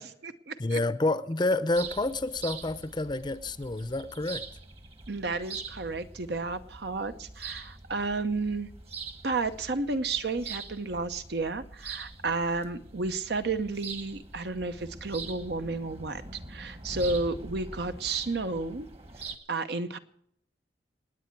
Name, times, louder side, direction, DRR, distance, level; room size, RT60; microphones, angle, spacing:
voice 1, 0.0-0.8 5.1-8.7 9.2-18.9 19.5-20.0, right 3 dB, 60° right, 0.9 m, -32 dB
voice 2, 0.6-4.4, left 2 dB, 25° left, 0.7 m, -29 dB
sound 1, 1.7-19.4, right 4 dB, 35° right, 1.4 m, -43 dB
27.5 x 9.5 x 4.6 m
head